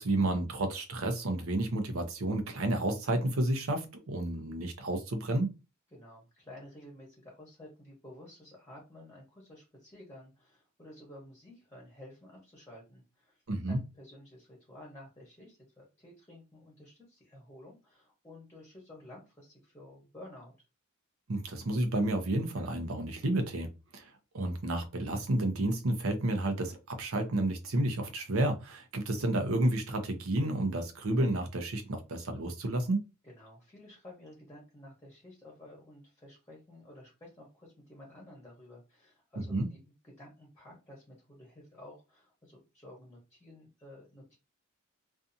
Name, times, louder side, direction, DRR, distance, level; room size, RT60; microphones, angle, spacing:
voice 1, 0.0-5.6 13.5-13.8 21.3-23.7 23.9-33.1 39.4-39.7, right 1 dB, 80° right, 0.7 m, -31 dB
voice 2, 5.9-20.5 33.2-44.4, left 1 dB, 15° left, 0.8 m, -52 dB
2.6 x 2.3 x 2.6 m
head